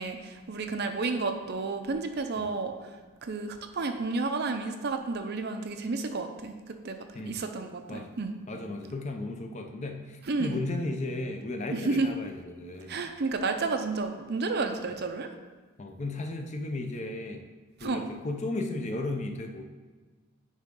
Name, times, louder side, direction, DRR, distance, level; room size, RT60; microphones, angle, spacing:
voice 1, 0.0-2.7 3.2-7.0 7.3-8.3 10.3-10.6 11.7-12.1 12.9-15.3 17.8-18.0, right 3 dB, 45° right, 6 dB, 0.5 m, -31 dB
voice 2, 8.5-13.1 15.8-17.4 17.8-19.6, left 2 dB, 30° left, 4 dB, 0.5 m, -35 dB
9.6 x 3.6 x 3.7 m, 1.4 s
head